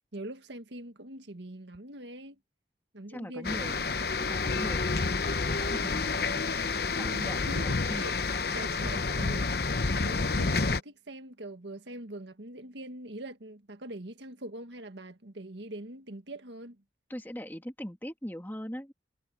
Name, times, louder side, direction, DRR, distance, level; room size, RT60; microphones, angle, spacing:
voice 1, 0.1-2.4 2.9-3.9 6.9-8.1 8.5-16.8, right 1 dB, 80° right, 1.7 m, -43 dB
voice 2, 3.1-3.8 4.2-6.2 6.8-8.0 8.8-9.0 17.1-18.9, equal, 10° left, 2.2 m, -41 dB
sound 1, 3.4-10.8, left 4 dB, 60° left, 0.9 m, -29 dB
head